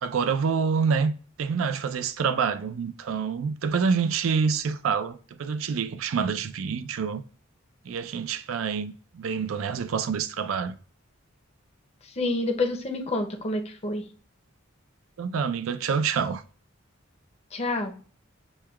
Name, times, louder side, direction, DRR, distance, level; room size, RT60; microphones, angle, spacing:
voice 1, 0.0-1.1 1.4-7.2 7.9-10.7 15.2-16.4, right 6 dB, 85° right, 0.4 m, -27 dB
voice 2, 12.2-14.0 17.5-17.9, left 2 dB, 30° left, 0.6 m, -28 dB
6.3 x 2.2 x 2.2 m
head